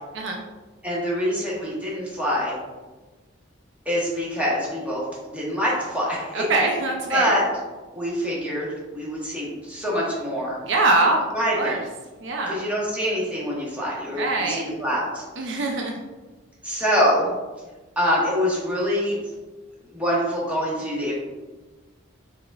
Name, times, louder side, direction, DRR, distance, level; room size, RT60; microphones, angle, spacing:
voice 1, 0.8-2.6 3.9-6.6 7.1-7.4 7.9-8.7 8.9-10.6 11.3-11.8 12.5-15.6 16.6-17.3 18.0-19.2 19.9-21.1, equal, 5° right, -6 dB, 1.0 m, -25 dB
voice 2, 6.3-7.3 10.6-11.2 11.6-11.8 12.2-12.6 14.2-14.6 15.4-16.0, right 2 dB, 60° right, 1 dB, 0.5 m, -23 dB
4.8 x 3.7 x 2.3 m, 1.2 s
head